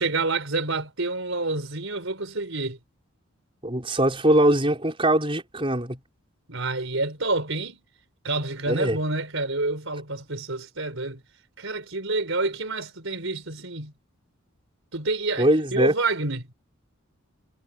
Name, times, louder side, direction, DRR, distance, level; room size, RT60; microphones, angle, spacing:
voice 1, 0.0-2.8 6.5-7.8 8.2-11.2 11.6-13.9 14.9-16.5, right 3 dB, 70° right, 4.6 m, -28 dB
voice 2, 3.6-6.0 8.7-9.0 15.4-15.9, right 1 dB, 25° right, 6.0 m, -21 dB
head